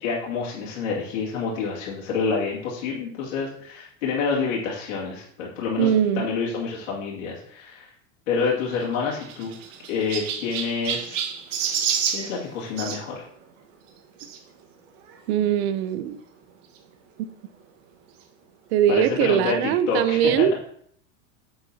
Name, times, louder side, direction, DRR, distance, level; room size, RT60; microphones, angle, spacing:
voice 1, 0.0-7.9 8.3-9.5 9.9-11.2 12.1-13.2 18.9-20.3, left 5 dB, 85° left, 2.4 m, -28 dB
voice 2, 5.8-6.3 15.3-16.2 18.7-20.5, right 9 dB, 55° right, 0.6 m, -21 dB
Chirp tweet, 8.7-13.0 14.2-14.4 15.1-15.2 15.4-15.5 16.8-16.9, right 8 dB, 80° right, 1.5 m, -29 dB
8.0 x 7.8 x 2.8 m
supercardioid pair, 165°, 37 cm